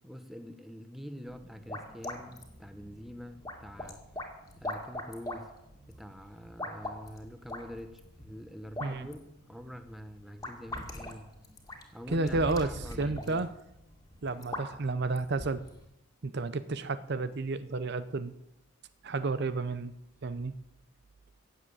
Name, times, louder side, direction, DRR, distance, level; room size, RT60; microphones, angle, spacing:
voice 1, 0.0-4.0 4.6-5.5 5.9-11.3 11.9-13.5, equal, ahead, 8 dB, 1.0 m, -45 dB
sound 1, 1.3-15.8, left 1 dB, 15° left, 2.2 m, -43 dB
voice 2, 12.1-12.7 13.0-13.5 14.2-15.6 16.2-18.3 19.0-19.9 20.2-20.5, right 3 dB, 50° right, 13 dB, 0.6 m, -31 dB
16.5 x 7.5 x 9.0 m, 0.85 s
head